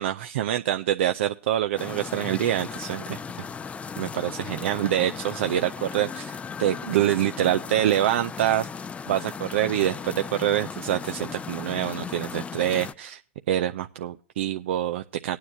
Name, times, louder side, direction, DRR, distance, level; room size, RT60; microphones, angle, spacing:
voice 1, 0.0-3.2 4.0-8.7 9.1-13.2 13.5-15.4, right 12 dB, 70° right, 8 dB, 0.5 m, -26 dB
sound 1, 1.8-12.9, left 6 dB, 20° left, 0.5 m, -37 dB
18.5 x 9.5 x 2.6 m, 0.38 s
hypercardioid pair, 95°, 7 cm